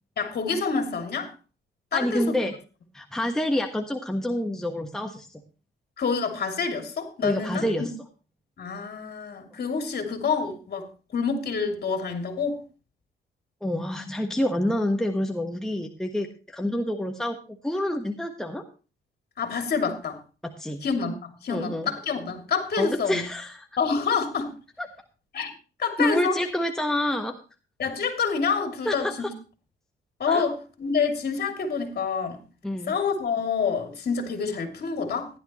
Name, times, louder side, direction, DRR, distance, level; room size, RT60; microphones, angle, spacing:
voice 1, 0.2-1.3 1.9-2.4 6.0-7.7 8.6-12.6 19.4-20.2 20.8-23.2 23.8-24.5 25.3-25.5 25.8-26.4 27.8-29.3 30.2-32.4 32.9-35.3, left 5 dB, 50° left, 3.0 m, -27 dB
voice 2, 1.9-2.5 2.9-5.4 7.2-7.9 13.6-17.4 17.6-18.6 20.4-20.8 21.5-21.9 22.8-23.7 24.8-24.9 26.0-27.4 28.8-29.3 30.3-30.5 32.6-32.9, left 1 dB, 5° left, 1.4 m, -28 dB
15.5 x 11.0 x 3.1 m
cardioid pair, 90°, 20 cm